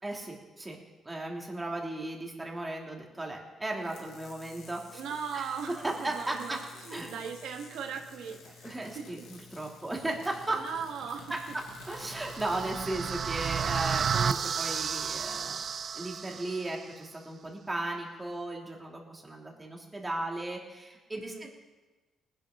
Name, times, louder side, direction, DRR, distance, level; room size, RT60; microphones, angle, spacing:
voice 1, 0.0-0.8 1.0-5.0 5.3-6.6 6.9-7.1 8.6-10.6 11.3-11.4 11.8-15.6 15.9-21.5, right 2 dB, 15° right, -1 dB, 3.0 m, -36 dB
sound 1, 3.8-12.8, left 5 dB, 85° left, 2.0 m, -51 dB
voice 2, 4.9-9.3 10.5-11.3 21.2-21.5, right 6 dB, 80° right, 2 dB, 1.8 m, -39 dB
sound 2, 11.7-16.8, right 7 dB, 50° right, 0.5 m, -32 dB
19.5 x 11.0 x 3.9 m, 1.2 s
cardioid pair, 90°, 0 cm